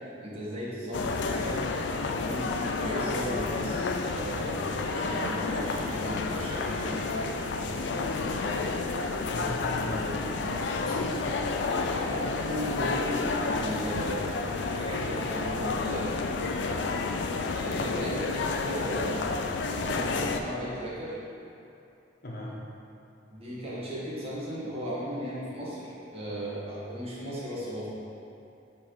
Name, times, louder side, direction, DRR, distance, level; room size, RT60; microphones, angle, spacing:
voice 1, 0.2-1.7 2.0-7.1 7.6-7.9 11.9-14.3 14.6-17.0 17.5-21.2 23.3-27.9, equal, 35° right, -8 dB, 1.4 m, -36 dB
sound 1, 0.9-20.4, left 3 dB, 80° left, 0.4 m, -30 dB
voice 2, 8.2-8.6 9.3-11.4 22.2-22.6, left 1 dB, 60° left, -4 dB, 1.1 m, -38 dB
5.8 x 3.8 x 4.6 m, 2.7 s
head